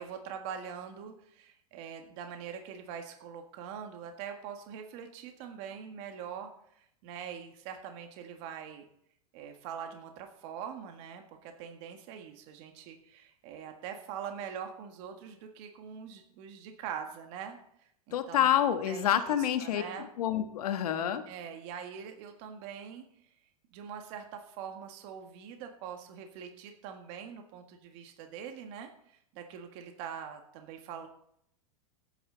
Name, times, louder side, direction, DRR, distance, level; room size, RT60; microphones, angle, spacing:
voice 1, 0.0-6.5 6.7-8.9 9.3-17.6 18.1-18.5 18.9-20.1 21.3-23.0 23.7-31.1, right 8 dB, 55° right, 5 dB, 1.8 m, -43 dB
voice 2, 18.1-19.8 20.2-21.2, left 10 dB, 80° left, 8 dB, 1.4 m, -27 dB
17.5 x 9.2 x 4.0 m, 0.71 s
supercardioid pair, 130°, 19 cm